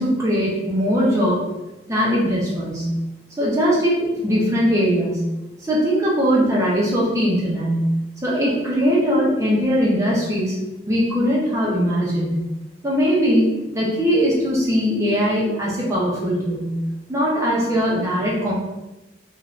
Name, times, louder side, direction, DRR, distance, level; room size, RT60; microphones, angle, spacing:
voice 1, 0.0-1.4 1.9-2.9 3.4-5.2 5.7-7.9 8.2-10.6 10.9-12.4 12.8-16.7 17.1-18.5, equal, 15° right, -6 dB, 0.8 m, -20 dB
2.5 x 2.5 x 3.2 m, 1.0 s
head